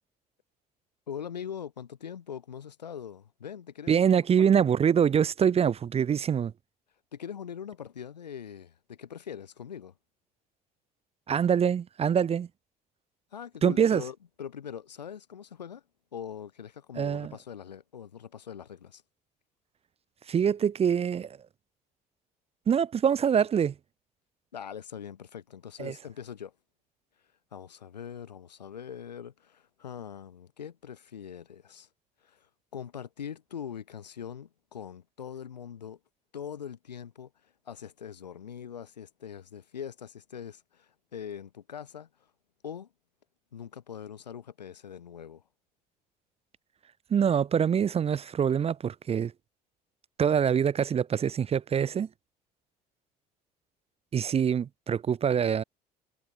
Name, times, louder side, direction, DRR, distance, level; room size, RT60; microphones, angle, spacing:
voice 1, 1.1-4.0 4.4-4.5 7.1-9.9 13.3-15.8 16.1-19.0 24.5-26.5 27.5-31.9 32.2-36.0 36.3-42.1 42.6-42.9 43.5-45.4, left 8 dB, 90° left, 1.5 m, -42 dB
voice 2, 3.9-6.5 11.3-12.5 13.6-14.0 17.0-17.3 20.3-21.4 22.7-23.7 25.8-25.9 47.1-49.3 50.2-52.1 54.1-55.6, right 8 dB, 30° right, 0.5 m, -24 dB
figure-of-eight pair, 60°, 21 cm